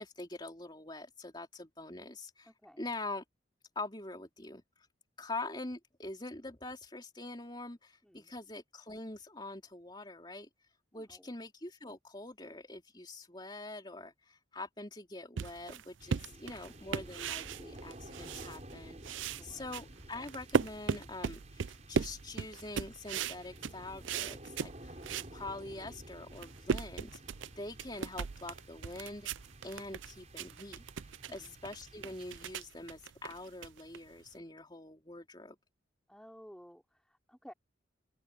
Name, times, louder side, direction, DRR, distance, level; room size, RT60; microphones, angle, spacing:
voice 1, 0.0-2.5 2.8-3.2 3.8-4.9 5.2-25.0 25.3-29.3 29.6-35.6, left 2 dB, 25° left, 3.5 m, -44 dB
voice 2, 2.4-2.9 8.0-8.3 10.9-11.3 16.1-16.7 19.4-19.7 31.3-31.6 36.1-37.5, equal, 5° left, 4.0 m, -56 dB
sound 1, 15.4-18.8 19.0-25.3 25.8-25.9 26.2-34.3, right 6 dB, 75° right, 0.5 m, -37 dB
sound 2, 16.0-32.9, right 1 dB, 35° right, 6.5 m, -52 dB
open air
head